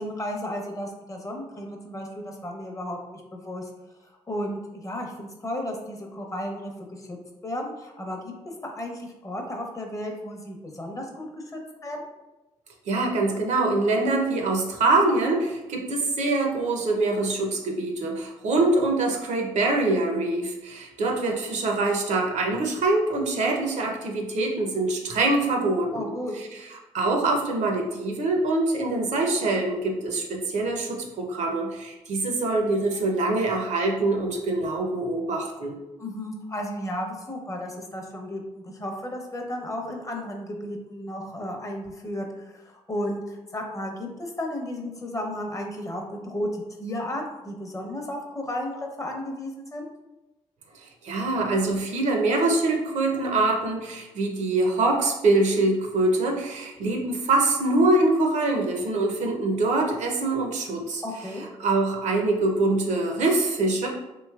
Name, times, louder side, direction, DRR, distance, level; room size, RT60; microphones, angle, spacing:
voice 1, 0.0-3.7 4.3-7.2 7.4-8.2 8.4-12.1 25.9-26.3 36.0-49.9 61.0-61.5, left 1 dB, 25° left, 1 dB, 0.6 m, -34 dB
voice 2, 12.9-26.1 26.9-35.8 50.8-61.0 61.6-63.9, right 2 dB, 65° right, 2 dB, 0.6 m, -24 dB
3.0 x 2.7 x 2.3 m, 1.0 s
supercardioid pair, 60°, 13 cm